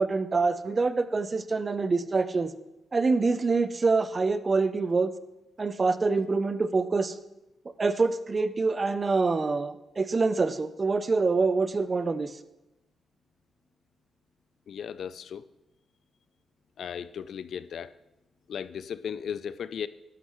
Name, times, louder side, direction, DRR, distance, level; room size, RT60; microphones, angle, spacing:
voice 1, 0.0-2.5 2.9-5.1 5.6-7.2 7.8-12.3, right 4 dB, 30° right, 12 dB, 0.5 m, -25 dB
voice 2, 14.7-15.5 16.8-17.9 18.5-19.9, left 8 dB, 65° left, 16 dB, 0.4 m, -36 dB
12.0 x 11.0 x 3.1 m, 0.94 s
cardioid pair, 125°, 0 cm